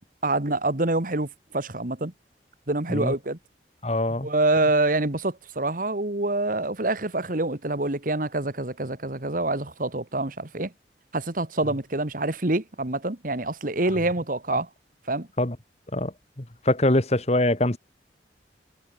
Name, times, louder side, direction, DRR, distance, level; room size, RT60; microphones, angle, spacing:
voice 1, 0.2-2.1 2.7-3.4 4.2-10.7 11.1-14.7 15.1-15.3, right 2 dB, 50° right, 1.9 m, -26 dB
voice 2, 3.8-4.3 15.4-15.6 15.9-17.8, left 1 dB, 35° left, 1.9 m, -24 dB
head